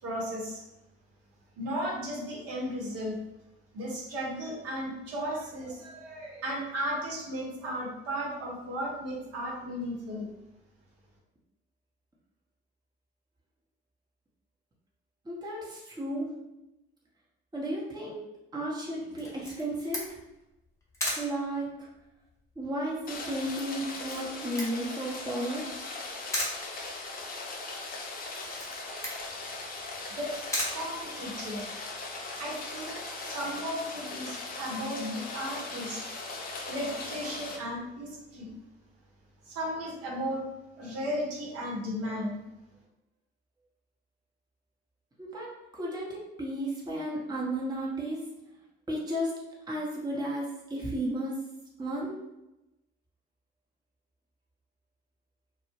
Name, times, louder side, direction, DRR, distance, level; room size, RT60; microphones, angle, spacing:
voice 1, 0.0-0.6 1.6-3.2 3.7-10.3 30.1-30.4 30.7-31.7 32.4-36.0 36.7-38.6 39.5-40.5 40.8-42.4, equal, 55° right, -3 dB, 0.9 m, -35 dB
voice 2, 15.2-16.3 17.5-18.2 18.5-20.1 21.2-21.9 22.6-25.7 45.2-48.2 48.9-49.4 49.7-51.4 51.8-52.2, right 1 dB, 15° right, -4 dB, 0.8 m, -33 dB
Camera, 19.2-31.7, equal, 10° left, 0.9 m, -39 dB
Rain, 23.1-37.6, left 3 dB, 30° left, 0.5 m, -39 dB
2.1 x 2.0 x 3.0 m, 0.94 s
hypercardioid pair, 55°, 30 cm